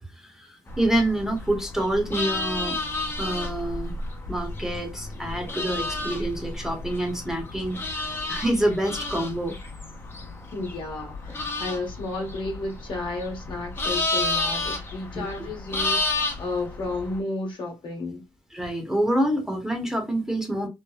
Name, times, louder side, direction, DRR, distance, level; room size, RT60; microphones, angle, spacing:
voice 1, 0.2-2.8 3.2-4.0 4.3-9.6 15.1-15.3 18.5-20.7, right 1 dB, 5° right, 0.9 m, -27 dB
sound 1, 0.7-17.2, left 2 dB, 25° left, 0.7 m, -31 dB
voice 2, 10.5-18.3, left 2 dB, 55° left, 1.2 m, -32 dB
3.2 x 2.1 x 2.2 m
supercardioid pair, 75°, 10 cm